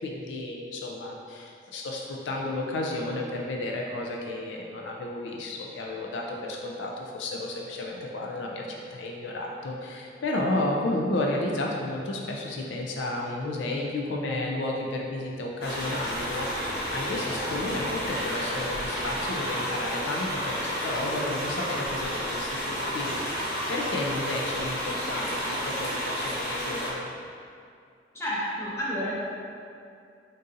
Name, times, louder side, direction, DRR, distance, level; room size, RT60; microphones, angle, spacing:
voice 1, 0.0-27.1, left 2 dB, 75° left, 0 dB, 0.4 m, -32 dB
sound 1, 15.6-26.9, equal, 55° left, 1.0 m, -31 dB
voice 2, 28.1-29.2, equal, 15° left, -8 dB, 0.8 m, -30 dB
3.9 x 2.6 x 3.7 m, 2.4 s
head